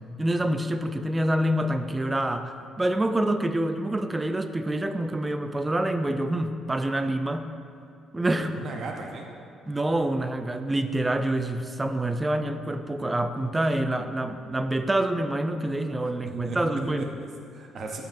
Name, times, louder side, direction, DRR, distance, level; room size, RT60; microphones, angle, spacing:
voice 1, 0.2-7.5 8.1-8.6 9.7-17.2, right 1 dB, 15° right, 8 dB, 0.3 m, -27 dB
voice 2, 8.4-9.3 16.4-18.0, right 3 dB, 50° right, 2 dB, 0.7 m, -36 dB
12.5 x 5.2 x 2.6 m, 2.4 s
cardioid pair, 140°, 0 cm